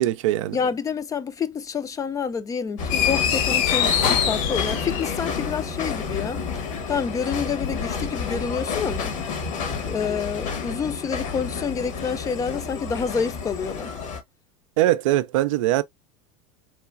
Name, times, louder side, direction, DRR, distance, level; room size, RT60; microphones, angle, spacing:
voice 1, 0.0-0.6 14.8-15.8, right 15 dB, 80° right, 0.4 m, -21 dB
voice 2, 0.5-9.1 9.9-13.9, left 6 dB, 20° left, 0.4 m, -28 dB
sound 1, 2.8-14.2, left 5 dB, 80° left, 1.5 m, -30 dB
sound 2, 2.9-5.4, left 8 dB, 65° left, 0.9 m, -23 dB
3.2 x 3.0 x 2.3 m
supercardioid pair, 120°, 16 cm